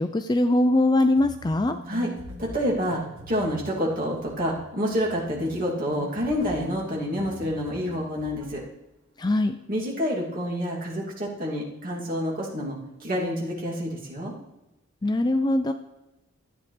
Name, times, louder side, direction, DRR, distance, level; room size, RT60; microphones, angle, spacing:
voice 1, 0.0-1.8 9.2-9.6 15.0-15.7, left 1 dB, 20° left, 8 dB, 0.3 m, -22 dB
sound 1, 1.1-8.8, right 1 dB, 75° right, 1.5 m, -44 dB
voice 2, 2.4-8.6 9.7-14.3, equal, 40° right, -4 dB, 2.8 m, -28 dB
13.5 x 9.2 x 3.4 m, 0.97 s
head